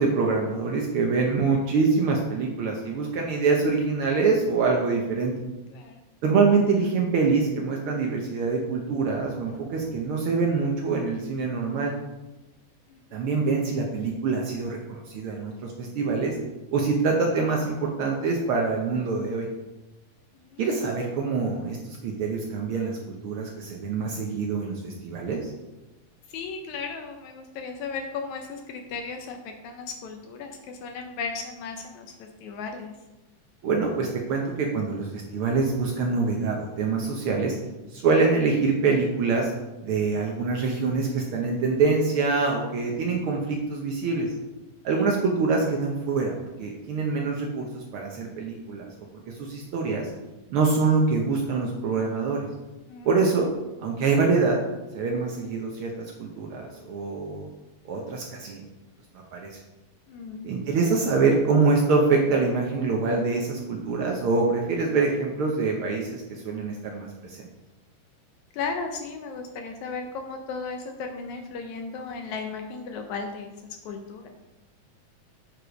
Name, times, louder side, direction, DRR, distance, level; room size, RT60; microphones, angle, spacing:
voice 1, 0.0-5.3 6.2-11.9 13.1-16.4 16.7-19.5 20.6-25.5 33.6-37.6 37.9-39.5 39.8-44.3 44.8-48.9 49.3-50.1 50.5-52.5 53.0-53.5 53.8-54.6 54.9-57.5 57.8-58.6 59.1-59.6 60.4-67.5, right 4 dB, 90° right, 0 dB, 1.2 m, -25 dB
voice 2, 12.9-13.2 20.4-20.6 26.3-32.9 45.0-45.1 52.9-53.1 60.1-60.5 68.5-73.5 73.9-74.3, left 4 dB, 75° left, 4 dB, 1.9 m, -35 dB
8.3 x 4.8 x 5.1 m, 1.0 s
omnidirectional pair, 3.7 m